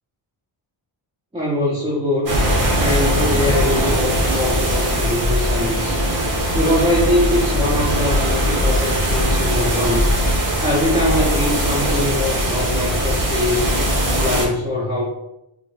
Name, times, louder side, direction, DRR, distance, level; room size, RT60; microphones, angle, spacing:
voice 1, 1.3-2.4 2.7-6.0 6.5-10.1 10.6-13.7 14.2-15.0, left 1 dB, 15° right, -6 dB, 0.4 m, -22 dB
sound 1, 2.3-14.5, equal, 40° right, 0.7 m, -20 dB
3.6 x 2.0 x 3.1 m, 0.86 s
wide cardioid pair, 150°, 49 cm